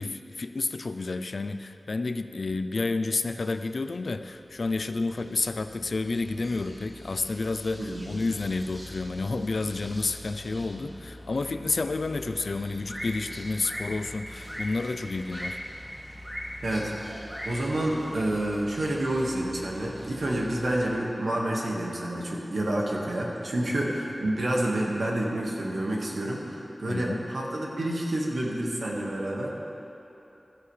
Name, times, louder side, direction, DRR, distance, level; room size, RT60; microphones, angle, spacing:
voice 1, 0.0-15.6 26.9-27.2, left 3 dB, 70° left, 10 dB, 0.4 m, -30 dB
sound 1, 4.3-20.9, equal, 20° right, 1.9 m, -42 dB
voice 2, 17.5-29.5, right 1 dB, 85° right, -3 dB, 1.8 m, -29 dB
15.0 x 13.5 x 3.3 m, 3.0 s
wide cardioid pair, 85°, 0 cm